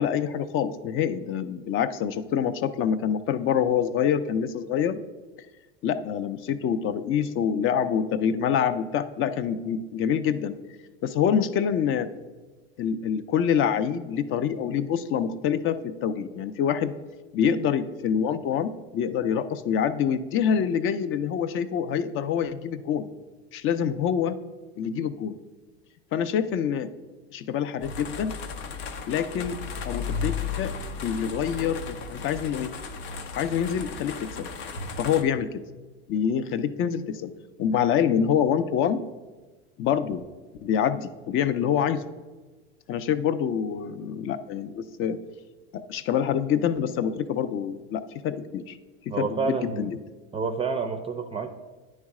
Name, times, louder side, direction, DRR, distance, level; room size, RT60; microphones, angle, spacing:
voice 1, 0.0-5.0 5.8-10.5 11.0-12.1 12.8-16.9 17.3-23.1 23.5-24.4 24.8-25.4 26.1-26.9 27.3-28.4 29.1-29.6 29.8-30.7 31.0-32.7 33.4-34.5 35.0-35.6 36.1-37.3 37.6-39.0 39.8-40.3 40.6-42.0 42.9-45.2 45.7-48.8 49.1-50.0, left 8 dB, 40° left, 12 dB, 0.5 m, -26 dB
sound 1, 27.8-35.2, left 5 dB, 80° left, 0.7 m, -34 dB
voice 2, 49.1-49.9 50.3-51.5, right 5 dB, 20° right, 7 dB, 0.4 m, -29 dB
9.5 x 3.2 x 4.7 m, 1.3 s
supercardioid pair, 105°, 31 cm